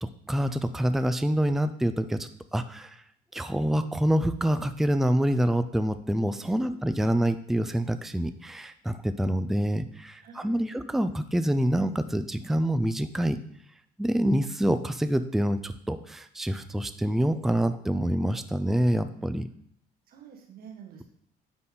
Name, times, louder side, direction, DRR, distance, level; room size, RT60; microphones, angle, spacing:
voice 1, 0.0-3.0 3.3-13.4 14.0-19.5, right 1 dB, ahead, 10 dB, 0.4 m, -26 dB
voice 2, 6.3-6.8 10.2-10.7 20.1-21.0, right 6 dB, 60° right, 2 dB, 1.7 m, -48 dB
9.8 x 4.1 x 3.8 m, 0.64 s
cardioid pair, 110°, 17 cm